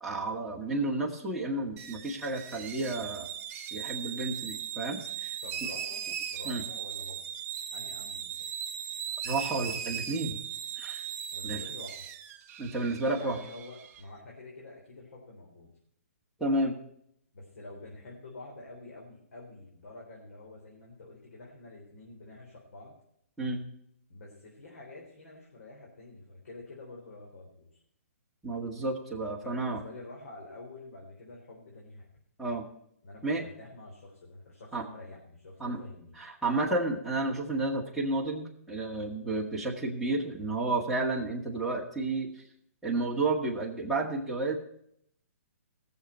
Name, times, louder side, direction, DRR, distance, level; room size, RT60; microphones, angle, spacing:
voice 1, 0.0-3.3 3.7-5.3 6.4-6.6 9.2-10.4 10.8-11.0 11.4-11.6 12.6-13.4 16.4-16.8 23.4-23.6 28.4-29.8 32.4-32.7 33.2-33.4 34.7-34.9 35.6-35.8 36.2-42.4 42.8-44.5, right 2 dB, ahead, -5 dB, 1.9 m, -31 dB
sound 1, 1.8-14.0, right 9 dB, 20° right, 0.8 m, -38 dB
voice 2, 5.4-6.0 6.3-7.2 7.7-8.5 11.3-12.1 13.1-15.7 17.3-23.0 24.1-27.8 29.4-32.1 33.0-36.3, left 2 dB, 70° left, -3 dB, 4.0 m, -48 dB
18.0 x 7.2 x 4.5 m, 0.71 s
hypercardioid pair, 160°, 8 cm